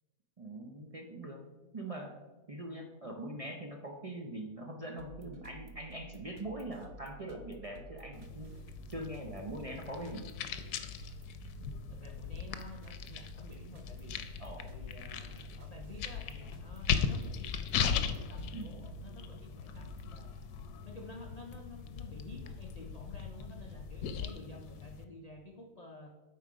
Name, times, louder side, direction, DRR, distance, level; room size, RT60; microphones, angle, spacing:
voice 1, 0.4-1.4 1.7-2.1 2.5-8.5 8.9-10.3 14.4-14.6 18.5-18.7, right 1 dB, 50° right, 1 dB, 0.4 m, -42 dB
sound 1, 5.0-20.2, right 3 dB, 90° right, 1.2 m, -52 dB
sound 2, 8.1-25.0, left 7 dB, 80° left, 1.1 m, -39 dB
voice 2, 11.9-14.1 14.6-20.5 20.8-26.1, left 2 dB, 60° left, 1 dB, 0.4 m, -51 dB
8.3 x 4.8 x 5.0 m, 1.2 s
omnidirectional pair, 1.7 m